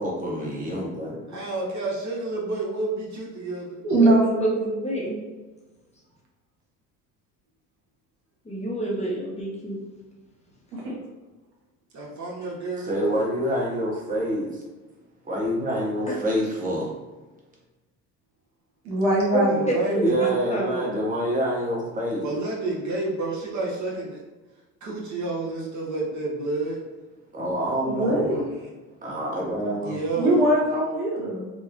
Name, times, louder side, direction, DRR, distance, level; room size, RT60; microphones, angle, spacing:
voice 1, 0.0-1.4 12.8-14.6 15.2-16.9 20.0-22.3 27.3-28.4 29.0-30.0, equal, 20° right, -3 dB, 1.0 m, -27 dB
voice 2, 1.3-3.8 11.9-13.2 19.5-20.1 22.2-24.2 24.8-26.8 29.8-30.4, right 2 dB, 45° right, -3 dB, 1.0 m, -30 dB
voice 3, 3.8-4.7 10.7-10.9 18.8-20.3 27.9-28.4 30.2-31.5, right 1 dB, 75° right, -4 dB, 1.0 m, -22 dB
voice 4, 4.8-5.2 8.5-9.8 19.3-20.9, right 1 dB, 15° left, -4 dB, 0.7 m, -27 dB
3.1 x 2.1 x 2.4 m, 1.2 s
hypercardioid pair, 70°, 40 cm